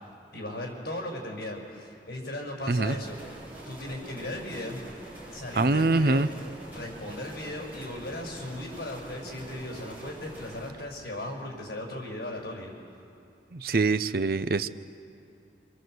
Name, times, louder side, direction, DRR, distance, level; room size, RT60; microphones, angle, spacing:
voice 1, 0.3-3.2 3.7-4.8 5.3-6.3 6.7-12.7, left 1 dB, 60° left, 0 dB, 5.7 m, -37 dB
sound 1, 2.9-10.7, right 1 dB, 10° right, 6.8 m, -45 dB
voice 2, 5.5-6.3 13.5-14.7, right 3 dB, 55° right, 13 dB, 0.6 m, -24 dB
26.0 x 25.5 x 7.8 m, 2.8 s
head